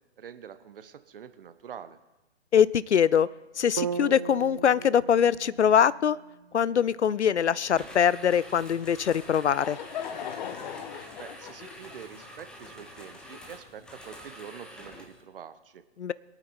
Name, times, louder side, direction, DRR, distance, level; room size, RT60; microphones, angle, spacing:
voice 1, 0.2-2.0 11.2-15.8, right 8 dB, 50° right, 11 dB, 1.1 m, -45 dB
voice 2, 2.5-3.3 3.6-6.2 6.5-9.8 16.0-16.1, left 8 dB, 70° left, 20 dB, 0.6 m, -23 dB
sound 1, 3.8-7.8, right 6 dB, 25° right, 0.4 m, -38 dB
sound 2, 7.6-15.2, equal, ahead, 1.0 m, -47 dB
Laughter / Crowd, 9.2-13.8, left 8 dB, 40° left, 1.2 m, -40 dB
23.5 x 9.0 x 4.4 m, 0.99 s
figure-of-eight pair, 130°, 35 cm